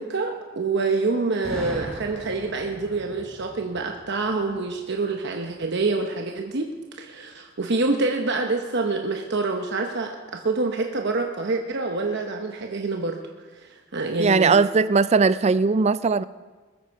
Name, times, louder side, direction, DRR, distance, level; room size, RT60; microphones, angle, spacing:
voice 1, 0.0-13.2 13.5-14.6, right 3 dB, 60° right, 3 dB, 0.9 m, -26 dB
Boom, 1.4-5.3, right 1 dB, 5° left, 5.7 m, -39 dB
voice 2, 14.2-16.2, right 4 dB, 35° right, 16 dB, 0.4 m, -19 dB
20.5 x 13.5 x 4.7 m, 1.4 s
head